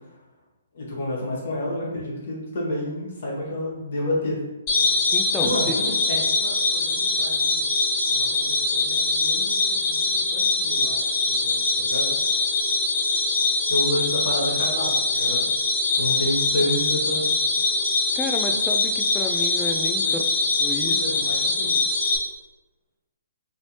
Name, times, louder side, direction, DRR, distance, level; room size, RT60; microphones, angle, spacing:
voice 1, 0.7-4.4 5.4-7.6 8.1-11.0 11.3-12.1 13.7-15.5 15.9-17.5 20.0-20.1 20.9-21.8, left 1 dB, 65° left, -4 dB, 1.3 m, -30 dB
sound 1, 4.7-22.2, left 3 dB, 30° left, 1.3 m, -23 dB
voice 2, 5.1-5.8 18.2-20.2 20.6-21.1, left 2 dB, 10° left, 4 dB, 0.3 m, -31 dB
3.0 x 2.7 x 3.1 m, 1.1 s
hypercardioid pair, 140°, 0 cm